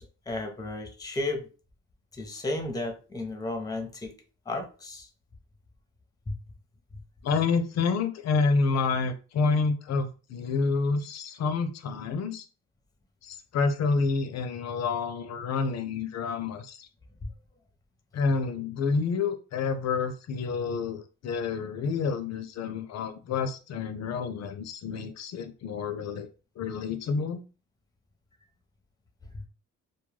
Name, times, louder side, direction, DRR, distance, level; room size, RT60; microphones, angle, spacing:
voice 1, 0.0-1.5 2.1-4.1 4.5-5.1 6.3-6.4 17.2-17.3 29.3-29.4, left 2 dB, 15° left, 4 dB, 0.6 m, -33 dB
voice 2, 7.2-12.5 13.2-16.9 18.1-26.3 26.6-27.4, left 4 dB, 60° left, 8 dB, 0.5 m, -28 dB
2.2 x 2.1 x 3.1 m, 0.35 s
cardioid pair, 90°, 30 cm